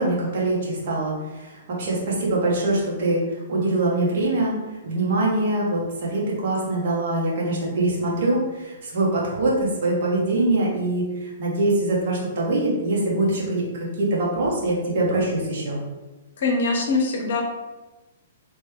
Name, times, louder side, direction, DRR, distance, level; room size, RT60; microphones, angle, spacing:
voice 1, 0.0-4.5 4.8-15.8, right 2 dB, 55° right, -4 dB, 1.0 m, -23 dB
voice 2, 16.4-17.4, left 3 dB, 60° left, 1 dB, 0.6 m, -22 dB
2.9 x 2.1 x 3.4 m, 1.1 s
figure-of-eight pair, 115°, 0 cm